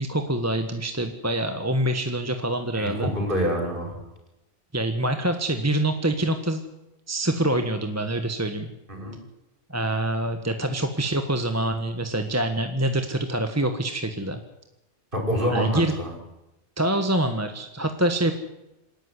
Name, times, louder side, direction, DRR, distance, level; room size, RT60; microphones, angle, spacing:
voice 1, 0.0-3.1 4.7-6.6 7.1-8.7 9.7-14.4 15.5-15.9 16.8-18.3, right 1 dB, 10° right, 6 dB, 1.3 m, -25 dB
voice 2, 2.7-4.0 8.9-9.2 15.1-16.1, equal, 40° right, 2 dB, 5.8 m, -26 dB
27.0 x 12.0 x 9.9 m, 0.94 s
omnidirectional pair, 1.4 m